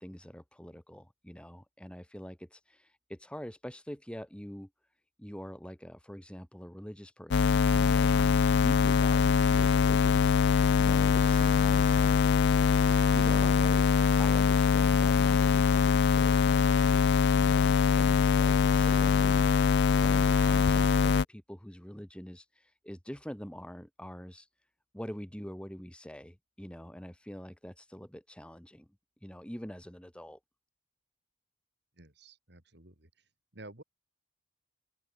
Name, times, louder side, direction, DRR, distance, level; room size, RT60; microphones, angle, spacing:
voice 1, 0.0-4.7 5.2-12.2 13.1-13.9 20.0-24.5 24.9-28.9 29.2-30.4, equal, 5° left, 1.3 m, -45 dB
sound 1, 7.3-21.2, left 5 dB, 60° left, 0.4 m, -23 dB
voice 2, 32.0-33.1 33.5-33.8, right 2 dB, 60° right, 3.9 m, -51 dB
open air
head